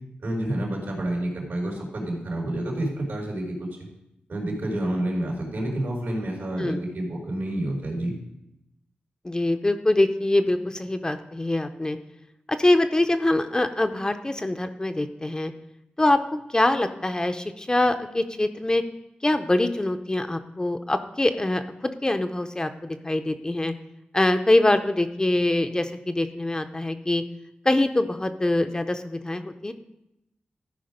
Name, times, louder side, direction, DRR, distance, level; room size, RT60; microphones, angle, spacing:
voice 1, 0.2-3.6 4.3-8.2, right 1 dB, 80° right, -2 dB, 3.4 m, -29 dB
voice 2, 9.2-12.0 12.5-15.5 16.0-16.2 16.5-18.8 19.2-23.7 24.1-27.2 27.6-29.7, left 1 dB, 20° left, 8 dB, 0.6 m, -24 dB
13.5 x 5.1 x 5.1 m, 0.86 s
wide cardioid pair, 80°, 4 cm